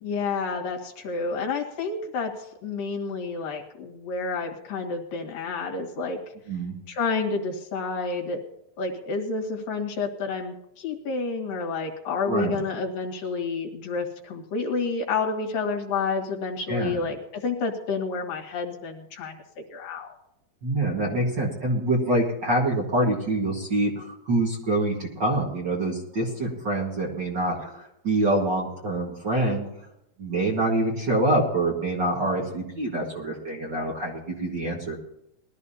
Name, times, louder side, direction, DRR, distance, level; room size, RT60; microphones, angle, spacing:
voice 1, 0.0-6.2 6.9-8.4 8.8-19.4 19.7-20.2, left 4 dB, 70° left, 0 dB, 3.5 m, -29 dB
voice 2, 16.7-17.0 20.6-29.7 30.2-35.0, right 1 dB, 40° right, -2 dB, 1.8 m, -25 dB
21.0 x 13.0 x 2.8 m, 0.83 s
omnidirectional pair, 4.2 m